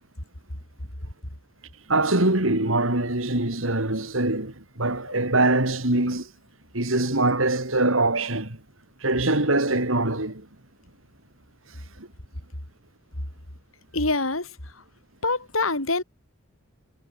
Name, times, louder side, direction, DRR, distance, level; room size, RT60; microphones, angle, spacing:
voice 1, 1.9-6.3 6.7-8.6 9.0-10.5 12.0-12.1, right 2 dB, 75° right, 4.5 m, -23 dB
voice 2, 13.9-14.5 15.2-16.0, left 3 dB, 80° left, 5.7 m, -25 dB
head